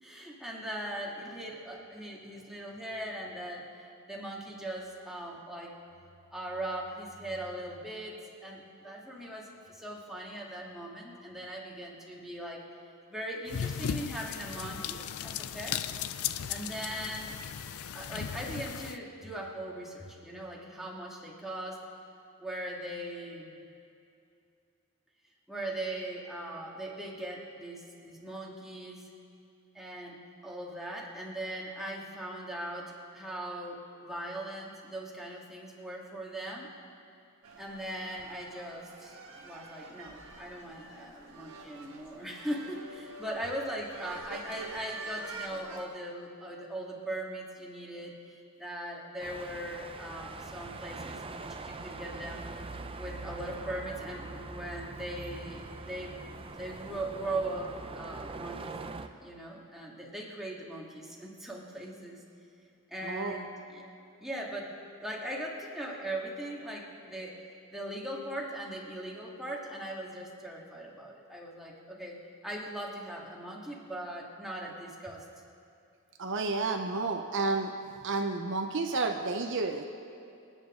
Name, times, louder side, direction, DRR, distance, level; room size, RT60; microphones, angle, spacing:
voice 1, 0.0-5.7 6.3-12.6 13.1-15.8 16.5-17.3 17.9-21.8 22.4-23.6 25.5-29.1 29.7-36.7 37.6-39.2 39.4-52.5 53.0-56.2 56.5-58.8 59.2-62.2 62.9-63.8 64.2-64.7 65.0-67.4 67.7-72.2 72.4-75.2, right 1 dB, ahead, -3 dB, 2.0 m, -40 dB
sound 1, 13.5-19.0, left 8 dB, 80° left, 0.5 m, -36 dB
sound 2, 37.4-45.9, right 2 dB, 75° right, 1.4 m, -46 dB
sound 3, 49.2-59.1, right 3 dB, 25° right, 0.6 m, -43 dB
voice 2, 63.0-63.4 76.2-77.7 78.0-79.8, right 3 dB, 60° right, 3 dB, 0.8 m, -31 dB
26.5 x 9.4 x 3.8 m, 2.6 s
head